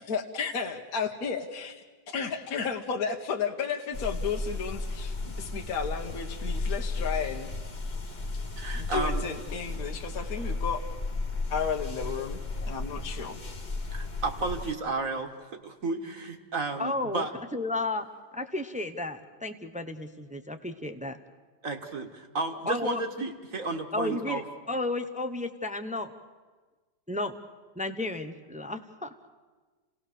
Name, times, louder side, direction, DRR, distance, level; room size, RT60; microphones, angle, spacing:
voice 1, 0.0-1.7 2.1-7.5 8.7-10.8 11.5-12.4 12.7-13.4, left 6 dB, 60° left, 3 dB, 1.6 m, -33 dB
sound 1, 3.9-14.7, left 3 dB, 30° left, 1.2 m, -34 dB
voice 2, 8.6-9.2 13.9-15.3 15.6-17.3 21.6-24.4, right 3 dB, 50° right, 4 dB, 1.9 m, -32 dB
voice 3, 16.8-17.3 17.5-18.1 18.3-21.2 22.7-23.0 23.9-24.4 24.7-26.1 27.1-27.3 27.8-29.1, left 2 dB, 10° right, 8 dB, 0.3 m, -32 dB
29.0 x 18.0 x 6.8 m, 1.4 s
omnidirectional pair, 1.8 m